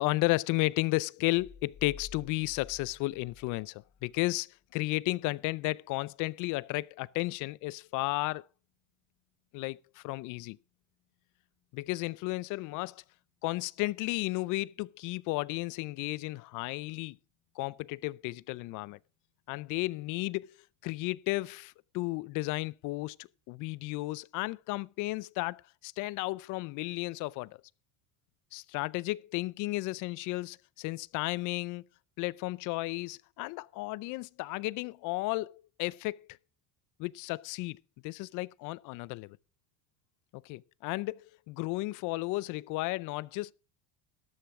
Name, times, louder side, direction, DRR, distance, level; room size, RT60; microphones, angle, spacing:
voice 1, 0.0-8.5 9.5-10.6 11.7-13.0 13.4-17.2 17.6-19.0 19.5-20.4 20.8-27.6 28.5-31.8 32.2-36.3 37.0-39.4 40.4-43.5, left 21 dB, 55° left, 0.5 m, -33 dB
sound 1, 1.4-4.2, left 6 dB, 25° left, 0.8 m, -51 dB
13.0 x 12.5 x 3.6 m
supercardioid pair, 125°, 37 cm